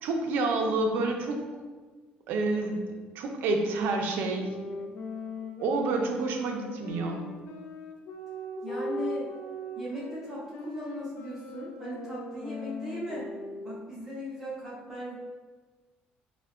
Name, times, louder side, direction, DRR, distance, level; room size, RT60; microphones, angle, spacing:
voice 1, 0.0-1.5 2.3-2.9 3.1-4.5 5.6-7.3, right 3 dB, 65° right, 2 dB, 0.4 m, -28 dB
sound 1, 4.3-14.0, left 1 dB, 60° left, 0.3 m, -39 dB
voice 2, 8.6-9.3 9.7-13.3 13.6-15.2, equal, 10° right, -8 dB, 0.6 m, -38 dB
4.3 x 2.1 x 2.3 m, 1.4 s
cardioid pair, 175°, 4 cm